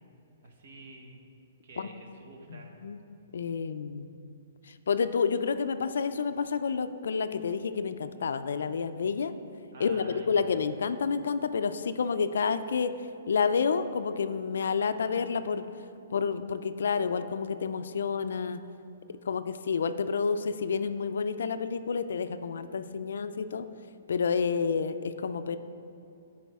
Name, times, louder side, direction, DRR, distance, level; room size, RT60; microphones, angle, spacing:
voice 1, 0.4-1.3 1.6-2.8 9.7-10.5, right 2 dB, 55° right, 1 dB, 1.1 m, -48 dB
voice 2, 2.5-3.0 3.3-4.1 4.7-9.3 9.8-12.9 13.3-15.7 16.1-18.6 19.3-23.7 24.1-25.6, left 5 dB, 75° left, 11 dB, 0.3 m, -29 dB
9.9 x 4.7 x 3.6 m, 2.7 s
hypercardioid pair, 155°, 0 cm